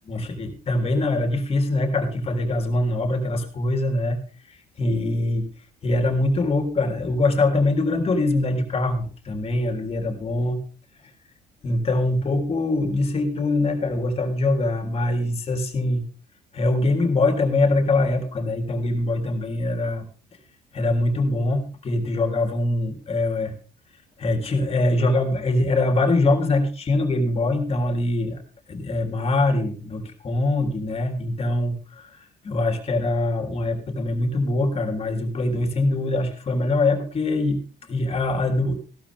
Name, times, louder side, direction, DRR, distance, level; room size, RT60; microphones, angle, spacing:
voice 1, 0.1-4.2 4.5-5.5 5.8-10.6 11.6-16.0 16.5-20.0 20.7-23.5 24.2-28.4 28.7-38.8, left 2 dB, 35° left, 6 dB, 3.4 m, -23 dB
15.5 x 12.5 x 3.6 m, 0.38 s
cardioid pair, 110°, 17 cm